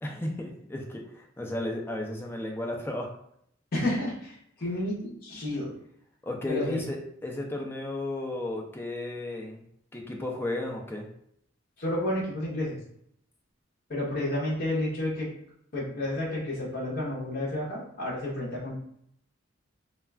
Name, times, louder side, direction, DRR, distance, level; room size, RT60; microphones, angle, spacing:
voice 1, 0.0-3.1 6.2-9.6 9.9-11.1, left 1 dB, 10° left, 0 dB, 0.4 m, -34 dB
voice 2, 3.7-5.7 6.5-6.8 11.8-12.8 13.9-15.3 15.7-18.8, left 1 dB, 50° left, -5 dB, 0.8 m, -31 dB
2.3 x 2.2 x 3.2 m, 0.70 s
head